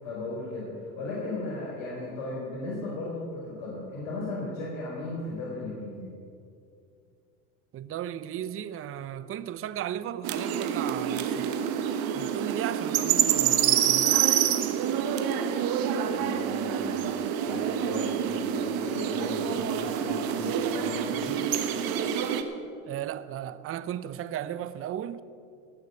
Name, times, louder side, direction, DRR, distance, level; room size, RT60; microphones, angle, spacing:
voice 1, 0.0-6.1 16.0-21.3, left 2 dB, 65° left, 4.4 m, -36 dB
voice 2, 7.7-11.5 12.1-14.2 22.8-25.2, right 10 dB, 30° right, 0.6 m, -35 dB
sound 1, 10.2-22.4, right 9 dB, 55° right, 1.4 m, -27 dB
18.5 x 6.5 x 8.2 m
hypercardioid pair, 85°, 42 cm